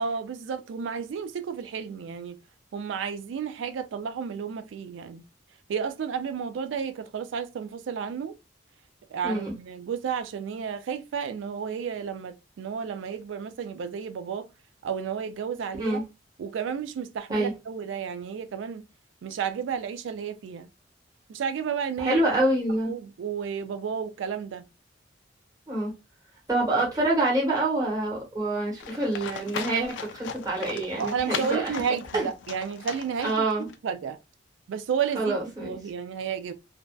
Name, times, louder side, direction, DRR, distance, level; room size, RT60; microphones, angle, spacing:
voice 1, 0.0-2.4 2.7-5.2 5.7-8.4 9.1-14.5 14.8-16.0 16.4-18.9 19.2-20.7 21.3-22.2 22.9-24.6 31.0-33.5 33.8-34.2 34.7-36.5, right 7 dB, 75° right, 0.3 m, -32 dB
voice 2, 9.2-9.5 15.8-16.0 17.3-17.5 22.0-22.9 25.7-25.9 26.5-31.9 32.1-32.3 33.2-33.7 35.1-35.7, right 2 dB, 20° right, 1.1 m, -26 dB
Livestock farm animals working animals, 28.8-33.7, left 7 dB, 70° left, 0.3 m, -38 dB
2.5 x 2.2 x 2.2 m
head